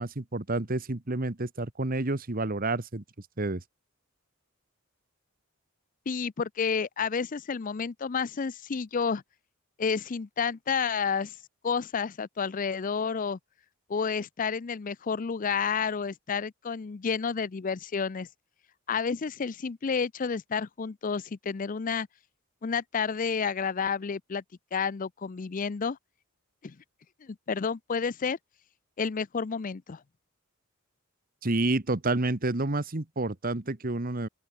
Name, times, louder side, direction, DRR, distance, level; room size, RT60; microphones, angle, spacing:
voice 1, 0.0-3.0 3.4-3.6 31.4-34.3, right 2 dB, 45° right, 1.4 m, -29 dB
voice 2, 6.1-9.2 9.8-11.4 11.6-13.4 13.9-18.3 18.9-22.1 22.6-24.4 24.7-26.0 26.6-26.8 27.2-28.4 29.0-30.0, left 6 dB, 40° left, 0.5 m, -30 dB
open air
head